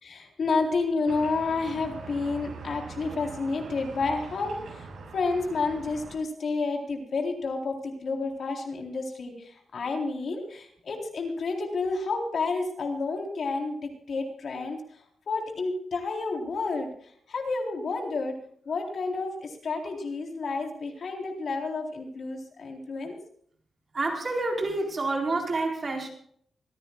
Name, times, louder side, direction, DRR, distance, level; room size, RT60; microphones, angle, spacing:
voice 1, 0.0-4.9 5.1-14.8 15.3-16.9 17.3-18.3 18.7-23.2, left 3 dB, 55° left, 1 dB, 3.9 m, -30 dB
sound 1, 1.1-6.2, right 4 dB, 70° right, 6.5 m, -42 dB
voice 2, 23.9-26.1, right 2 dB, 35° right, 0 dB, 4.4 m, -28 dB
25.5 x 16.0 x 2.4 m, 0.62 s
wide cardioid pair, 155°, 0 cm